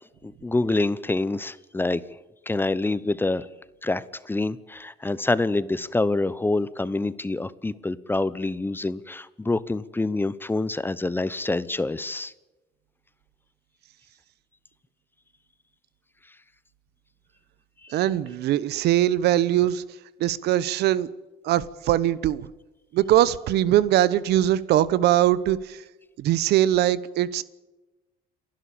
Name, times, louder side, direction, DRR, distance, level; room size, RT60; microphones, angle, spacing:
voice 1, 0.2-2.0 2.5-3.5 3.8-12.3, left 2 dB, 10° left, 17 dB, 0.8 m, -26 dB
voice 2, 17.9-19.8 20.2-21.1 21.4-22.5 22.9-25.8 26.2-27.4, right 13 dB, 75° right, 18 dB, 1.0 m, -21 dB
28.5 x 12.0 x 8.6 m, 1.1 s
cardioid pair, 110°, 17 cm